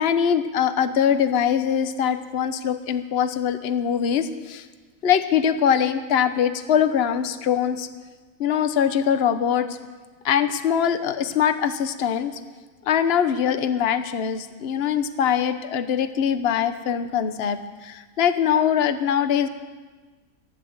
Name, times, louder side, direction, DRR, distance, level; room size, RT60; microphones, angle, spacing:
voice 1, 0.0-4.6 5.0-7.9 8.4-9.7 10.2-12.3 12.9-19.5, left 8 dB, 50° left, 10 dB, 1.0 m, -22 dB
15.5 x 11.5 x 8.0 m, 1.4 s
omnidirectional pair, 1.5 m